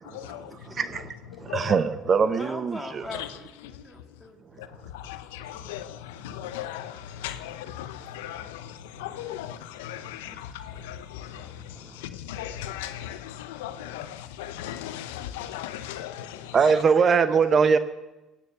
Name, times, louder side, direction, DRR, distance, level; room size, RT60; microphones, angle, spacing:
voice 1, 0.1-0.5 1.5-1.8 3.1-3.4 4.9-11.5 12.0-16.8, left 11 dB, 90° left, 0.7 m, -37 dB
voice 2, 0.8-1.1 1.4-3.0 16.5-17.8, right 5 dB, 45° right, 0.8 m, -21 dB
voice 3, 2.2-4.6, left 1 dB, 5° left, 3.1 m, -41 dB
16.0 x 9.2 x 6.6 m
supercardioid pair, 75°, 0 cm